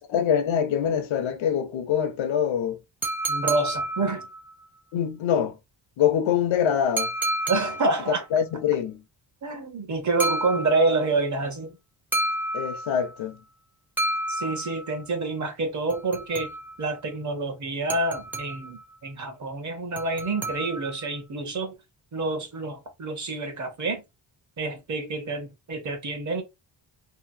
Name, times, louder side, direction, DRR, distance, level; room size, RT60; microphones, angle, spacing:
voice 1, 0.0-2.8 4.9-5.6 6.0-7.1 8.3-9.0 12.5-13.4, left 8 dB, 80° left, 0.7 m, -24 dB
sound 1, 3.0-4.5 7.0-8.1 10.2-11.1 12.1-13.2 14.0-15.0 15.9-16.9 17.9-18.8 20.0-21.1, right 1 dB, 5° right, 0.5 m, -30 dB
voice 2, 3.3-4.3 7.5-8.2 9.4-11.7 14.3-16.5 16.8-21.8 22.1-24.0 24.6-26.4, right 3 dB, 40° right, 0.8 m, -27 dB
2.9 x 2.6 x 2.6 m
wide cardioid pair, 155°, 46 cm